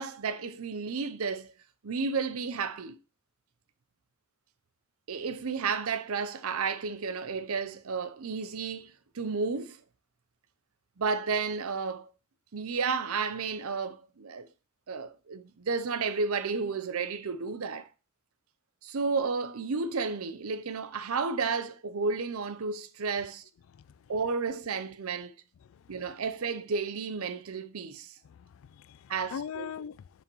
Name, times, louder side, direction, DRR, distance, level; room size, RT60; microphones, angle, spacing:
voice 1, 0.0-1.5 1.8-3.0 5.1-9.8 11.0-12.1 12.5-14.5 14.9-17.9 18.8-23.4 24.1-25.3 25.9-28.1 29.1-29.7, right 4 dB, 90° right, 0.6 m, -32 dB
voice 2, 25.6-26.0 28.2-30.2, left 7 dB, 70° left, 0.3 m, -42 dB
6.8 x 5.6 x 3.0 m
head